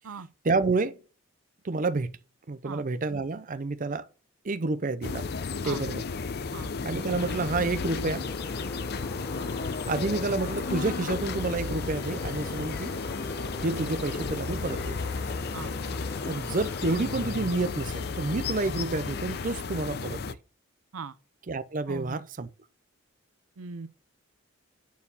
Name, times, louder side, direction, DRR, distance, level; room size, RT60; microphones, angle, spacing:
voice 1, 0.4-1.0 1.6-2.2 2.5-4.1 4.4-5.3 5.6-6.0 6.8-8.3 9.9-13.0 13.6-15.0 16.2-20.4 21.5-22.5, right 3 dB, 40° right, 0.6 m, -29 dB
sound 1, 5.0-20.3, left 4 dB, 50° left, 0.5 m, -33 dB
sound 2, 6.9-17.3, left 1 dB, 10° left, 0.9 m, -45 dB
sound 3, 11.8-19.4, equal, 65° left, 1.6 m, -46 dB
voice 2, 21.9-22.2 23.6-23.9, right 4 dB, 80° right, 0.6 m, -39 dB
9.3 x 4.6 x 7.0 m
head